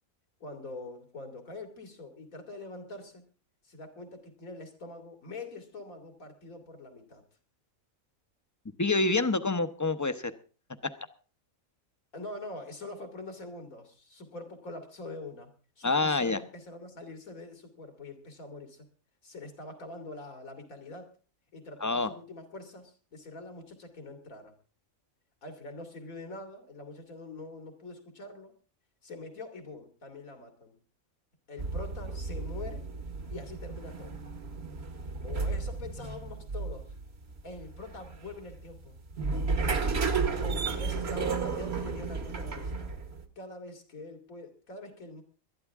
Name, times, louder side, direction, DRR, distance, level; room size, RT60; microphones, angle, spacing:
voice 1, 0.4-3.2 3.6-7.2 12.1-15.5 15.8-18.9 19.2-21.1 21.5-24.5 25.4-28.5 29.0-30.8 31.5-32.9 33.3-34.2 35.2-36.9 37.4-39.0 40.4-42.9 43.4-45.2, left 2 dB, 80° left, 7 dB, 2.9 m, -44 dB
voice 2, 8.8-10.3 15.8-16.4 21.8-22.1, left 3 dB, 20° left, 11 dB, 0.6 m, -27 dB
sound 1, 31.6-43.2, right 4 dB, 50° right, 1.5 m, -33 dB
20.5 x 12.5 x 3.6 m, 0.37 s
omnidirectional pair, 1.4 m